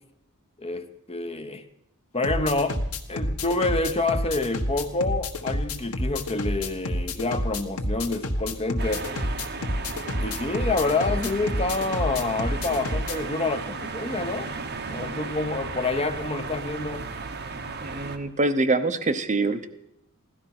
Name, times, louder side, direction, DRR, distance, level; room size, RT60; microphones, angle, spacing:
voice 1, 0.6-1.7 2.1-2.8 3.1-9.1 10.2-14.5 14.9-17.1, left 3 dB, 25° left, 8 dB, 0.9 m, -27 dB
sound 1, 2.2-13.2, left 1 dB, 75° left, 1.5 m, -29 dB
sound 2, 8.8-18.2, right 4 dB, 50° right, 1.2 m, -35 dB
voice 2, 17.8-19.7, right 2 dB, 35° right, 8 dB, 0.8 m, -24 dB
16.5 x 12.5 x 6.0 m, 0.79 s
head